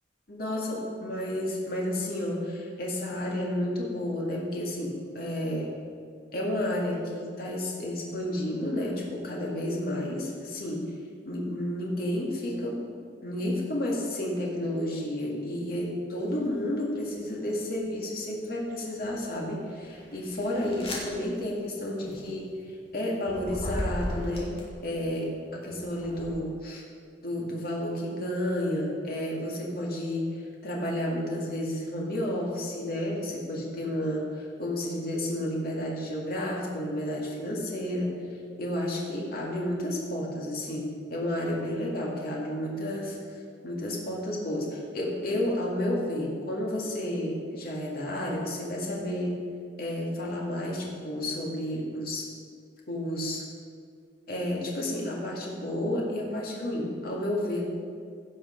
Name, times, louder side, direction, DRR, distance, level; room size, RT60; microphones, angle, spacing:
voice 1, 0.3-5.7 6.3-10.8 11.2-12.8 13.2-22.5 22.9-24.5 24.8-26.8 27.2-30.4 30.6-38.1 38.6-43.2 43.6-49.4 49.8-52.2 52.9-53.4 54.3-57.7, left 1 dB, 55° left, -3 dB, 2.2 m, -31 dB
sound 1, 16.3-16.6 17.2-18.0 18.6-25.0 25.6-26.3, equal, 35° left, 2.3 m, -38 dB
16.0 x 5.6 x 5.1 m, 2.2 s
head